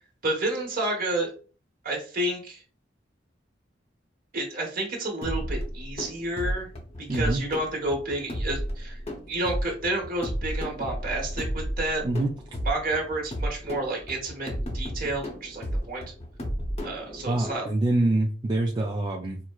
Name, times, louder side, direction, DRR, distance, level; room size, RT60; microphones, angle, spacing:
voice 1, 0.2-1.3 1.8-2.6 4.3-6.7 7.1-9.0 9.3-12.0 12.6-16.0 16.8-17.7, right 2 dB, 50° right, -2 dB, 1.1 m, -30 dB
sound 1, 5.2-17.6, equal, 35° left, 0.7 m, -33 dB
voice 2, 7.1-7.4 12.0-12.3 17.3-19.4, right 2 dB, 25° right, -1 dB, 0.3 m, -25 dB
4.4 x 2.0 x 2.3 m, 0.39 s
head